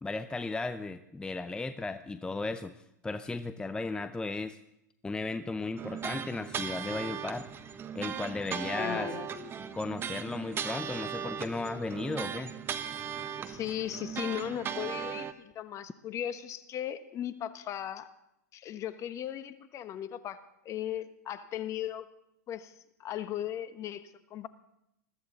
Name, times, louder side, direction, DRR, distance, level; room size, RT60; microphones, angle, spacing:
voice 1, 0.0-2.7 3.0-4.6 5.0-7.5 7.9-9.1 9.7-12.5, left 3 dB, 10° left, 10 dB, 0.6 m, -35 dB
sound 1, 5.8-15.3, right 8 dB, 25° right, 1.2 m, -38 dB
voice 2, 8.7-9.5 13.1-18.1 18.5-22.1 22.5-22.7 23.0-24.5, left 10 dB, 35° left, 12 dB, 1.2 m, -37 dB
21.5 x 14.5 x 4.0 m, 0.80 s
hypercardioid pair, 110°, 10 cm